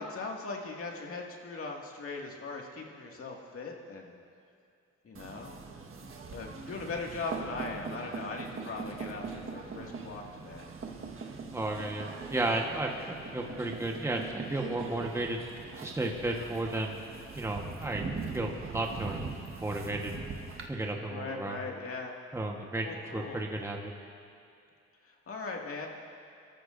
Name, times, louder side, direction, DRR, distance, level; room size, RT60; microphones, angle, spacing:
voice 1, 0.0-4.2 5.0-5.5 6.3-10.6 21.0-22.1 22.8-23.4 25.0-25.9, left 3 dB, 50° left, -1 dB, 2.2 m, -39 dB
sound 1, 5.1-20.7, right 4 dB, 45° right, 1.5 m, -42 dB
voice 2, 11.5-15.4 15.8-17.0 17.3-18.0 18.3-19.2 19.6-20.1 20.7-21.6 22.3-23.9, right 2 dB, 10° right, 0 dB, 1.3 m, -33 dB
24.0 x 13.5 x 2.6 m, 2.5 s
cardioid pair, 90°, 30 cm